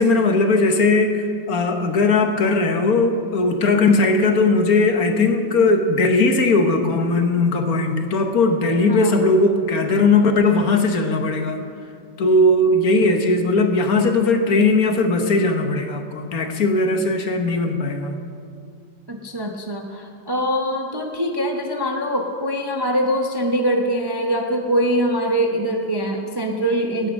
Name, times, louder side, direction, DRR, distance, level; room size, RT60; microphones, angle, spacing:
voice 1, 0.0-11.6 12.2-18.2, left 3 dB, 60° left, 5 dB, 1.4 m, -18 dB
voice 2, 8.9-9.3 19.1-27.1, equal, 20° right, 2 dB, 0.7 m, -23 dB
16.5 x 9.7 x 6.4 m, 2.3 s
omnidirectional pair, 1.9 m